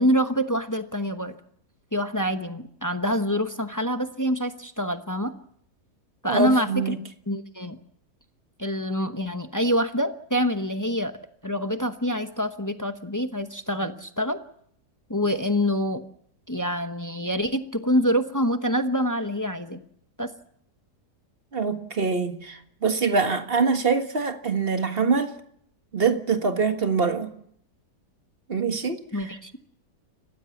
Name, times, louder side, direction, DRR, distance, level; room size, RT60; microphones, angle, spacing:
voice 1, 0.0-1.3 1.9-5.3 6.2-6.9 7.3-7.8 8.6-11.1 11.4-14.4 15.1-16.0 16.5-19.8 20.2-20.3 29.1-29.5, equal, 15° left, 0.8 m, -26 dB
voice 2, 6.2-7.0 21.5-25.3 25.9-27.3 28.5-29.3, right 5 dB, 35° right, 1.7 m, -24 dB
28.5 x 15.5 x 7.1 m
omnidirectional pair, 1.7 m